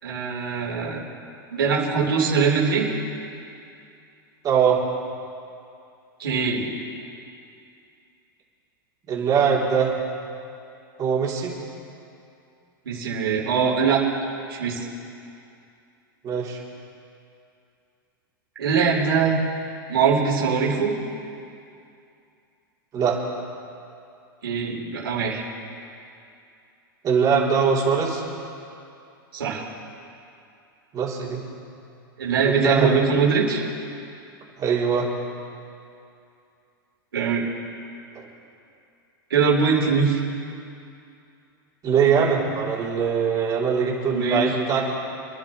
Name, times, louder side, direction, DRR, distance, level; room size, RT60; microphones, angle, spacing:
voice 1, 0.0-1.0 1.5-2.9 6.2-6.7 12.8-14.0 14.5-14.8 18.6-19.4 19.9-20.9 24.4-25.4 29.3-29.6 32.2-33.6 37.1-37.4 39.3-40.2 44.1-44.6, right 5 dB, 90° right, -3 dB, 4.3 m, -22 dB
voice 2, 4.4-4.8 9.1-9.9 11.0-11.5 16.2-16.6 22.9-23.2 27.0-28.2 30.9-31.4 32.4-32.9 34.6-35.1 38.1-38.3 41.8-44.9, right 6 dB, 30° right, -4 dB, 3.6 m, -22 dB
28.5 x 11.0 x 3.3 m, 2.6 s
hypercardioid pair, 115°, 12 cm